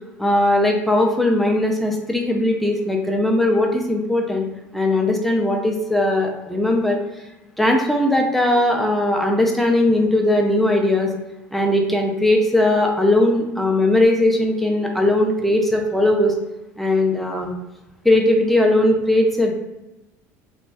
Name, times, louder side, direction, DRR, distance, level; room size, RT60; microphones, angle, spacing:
voice 1, 0.2-4.5 4.7-7.0 7.6-11.1 11.5-16.3 16.8-17.5 18.0-19.5, left 1 dB, ahead, 1 dB, 0.6 m, -19 dB
3.0 x 2.2 x 2.6 m, 1.0 s
hypercardioid pair, 75°, 9 cm